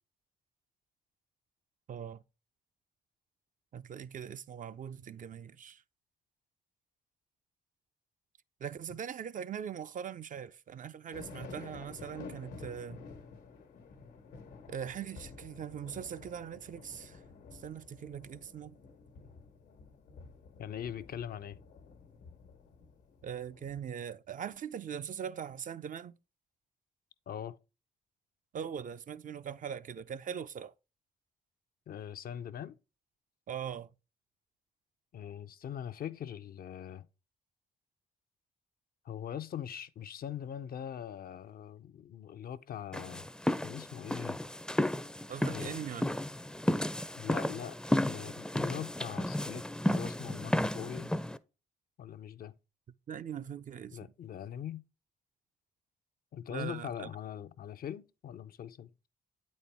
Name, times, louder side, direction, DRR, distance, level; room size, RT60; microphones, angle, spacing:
voice 1, 1.9-2.2 3.7-5.8 8.6-13.0 14.7-17.2 17.5-18.7 23.2-26.1 28.5-30.7 33.5-33.9 45.3-46.0 53.1-54.0 56.5-57.1, right 8 dB, 50° right, 0.4 m, -41 dB
sound 1, 11.1-23.9, left 5 dB, 85° left, 1.3 m, -51 dB
voice 2, 20.6-21.6 27.3-27.6 31.9-32.8 35.1-37.1 39.0-43.3 43.6-44.4 45.5-45.8 47.2-47.8 48.0-51.1 52.0-52.5 53.9-54.8 56.3-58.9, left 9 dB, 60° left, 0.5 m, -42 dB
sound 2, 42.9-51.4, left 1 dB, 5° left, 0.4 m, -33 dB
8.4 x 4.3 x 3.3 m
supercardioid pair, 55°, 17 cm